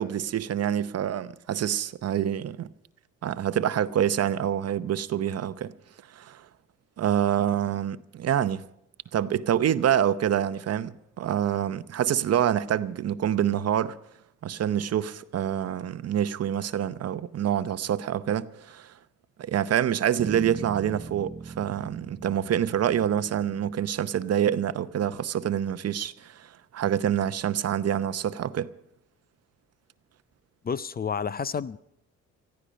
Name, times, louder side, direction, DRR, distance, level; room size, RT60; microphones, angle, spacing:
voice 1, 0.0-2.7 3.2-5.7 6.1-6.4 7.0-8.6 9.1-13.9 14.4-18.9 19.4-28.7, right 10 dB, 55° right, 0.8 m, -26 dB
sound 1, 20.2-24.6, right 5 dB, 25° right, 0.8 m, -40 dB
voice 2, 30.6-31.8, left 6 dB, 30° left, 0.5 m, -30 dB
19.0 x 14.5 x 5.2 m
cardioid pair, 90°, 30 cm